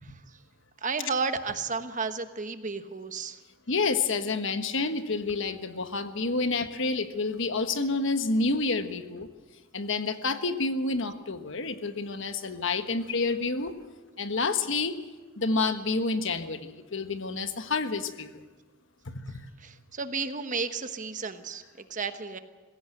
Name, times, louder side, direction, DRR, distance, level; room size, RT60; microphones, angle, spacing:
voice 1, 0.0-0.4 0.8-3.4 19.6-22.4, right 4 dB, 40° right, 9 dB, 1.2 m, -33 dB
voice 2, 3.7-9.3 9.7-13.7 14.2-15.0 15.4-18.4 19.0-19.4, left 3 dB, 65° left, 9 dB, 1.4 m, -29 dB
20.5 x 16.5 x 8.0 m, 1.3 s
head